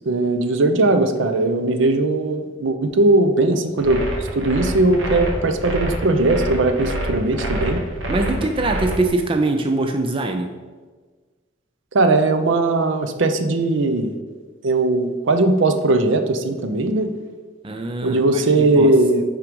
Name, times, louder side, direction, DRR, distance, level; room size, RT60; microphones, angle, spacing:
voice 1, 0.1-7.8 11.9-14.1 14.6-17.1 18.0-19.2, right 2 dB, 70° right, 8 dB, 0.6 m, -19 dB
sound 1, 3.8-9.0, right 1 dB, 85° right, 1.2 m, -27 dB
voice 2, 8.1-10.5 17.6-18.9, right 2 dB, 25° right, 5 dB, 0.4 m, -23 dB
5.9 x 4.8 x 5.2 m, 1.4 s
head